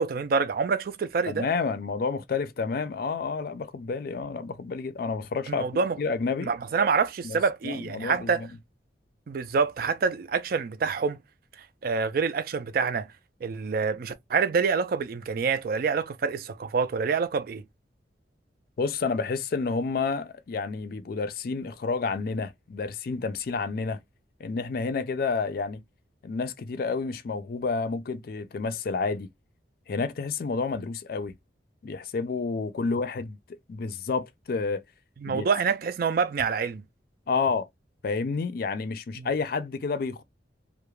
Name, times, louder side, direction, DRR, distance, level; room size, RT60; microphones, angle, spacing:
voice 1, 0.0-1.5 5.5-6.0 6.4-8.5 9.3-11.2 11.8-13.1 13.4-17.6 35.2-36.8 39.2-39.3, right 5 dB, 50° right, 0.3 m, -26 dB
voice 2, 1.3-5.6 6.0-6.5 7.2-7.4 7.6-8.5 18.8-24.0 24.4-25.8 26.2-29.3 29.9-31.3 31.8-33.4 33.7-34.8 35.3-35.5 37.3-37.7 38.0-40.2, left 4 dB, 55° left, 0.4 m, -30 dB
2.3 x 2.1 x 3.0 m
head